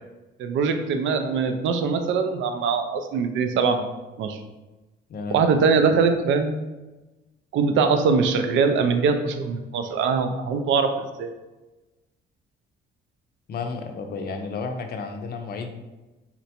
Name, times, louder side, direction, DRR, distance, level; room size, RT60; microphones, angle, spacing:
voice 1, 0.4-3.9 4.2-4.4 5.3-6.7 7.5-11.3, right 5 dB, 75° right, 7 dB, 0.4 m, -22 dB
voice 2, 5.1-5.5 13.5-15.8, left 4 dB, 50° left, 5 dB, 0.5 m, -32 dB
3.8 x 2.1 x 2.8 m, 1.1 s
cardioid pair, 90°, 20 cm